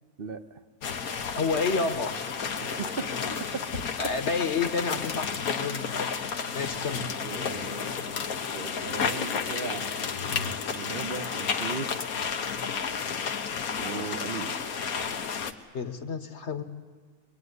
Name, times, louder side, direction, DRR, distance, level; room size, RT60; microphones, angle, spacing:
sound 1, 0.8-15.5, left 6 dB, 70° left, 1.6 m, -32 dB
voice 1, 1.3-2.1 4.0-6.1 6.5-7.2 15.7-16.6, left 4 dB, 50° left, 9 dB, 1.6 m, -29 dB
voice 2, 2.6-3.1 3.5-3.6 7.2-8.3 8.5-9.9 10.3-11.9 13.8-14.5, right 5 dB, 40° right, 10 dB, 1.1 m, -37 dB
24.0 x 21.0 x 9.7 m, 1.5 s
omnidirectional pair, 1.6 m